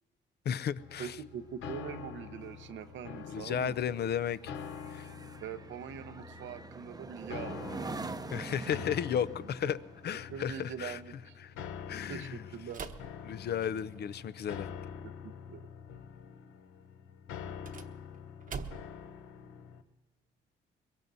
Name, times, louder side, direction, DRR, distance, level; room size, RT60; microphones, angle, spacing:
voice 1, 0.5-1.1 3.3-4.5 4.9-5.1 8.3-9.8 10.0-11.0 11.4-12.4 13.2-14.7, left 8 dB, 55° left, 14 dB, 0.5 m, -34 dB
sound 1, 0.7-19.8, left 7 dB, 90° left, 0.9 m, -46 dB
voice 2, 1.0-3.8 5.4-7.8 9.4-9.8 10.3-11.4 12.1-12.8 15.2-15.7, right 8 dB, 75° right, 10 dB, 0.8 m, -43 dB
sound 2, 1.4-13.1 13.5-13.8, right 3 dB, 20° right, 0.7 m, -46 dB
sound 3, 12.7-14.1 17.4-19.1, right 5 dB, 40° right, 1.0 m, -44 dB
22.5 x 22.0 x 2.7 m, 1.1 s
cardioid pair, 90°, 20 cm